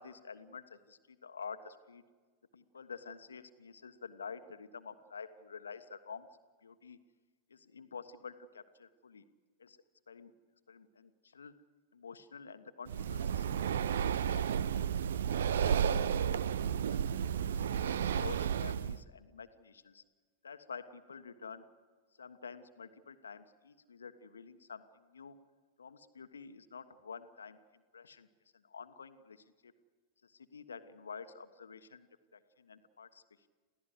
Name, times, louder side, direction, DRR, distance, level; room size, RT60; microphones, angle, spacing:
voice 1, 0.0-2.0 2.5-6.3 6.6-7.0 7.5-9.3 9.6-9.8 10.1-10.3 10.7-11.5 11.9-13.4 13.8-14.9 15.4-16.3 16.6-20.0 20.4-21.7 22.2-25.4 25.8-27.6 27.9-28.3 28.6-29.7 30.2-32.1 32.3-33.2, left 5 dB, 70° left, 10 dB, 1.3 m, -49 dB
Breathing, 12.9-19.0, right 8 dB, 60° right, 0.6 m, -32 dB
28.5 x 16.0 x 8.0 m, 1.4 s
figure-of-eight pair, 90°, 0 cm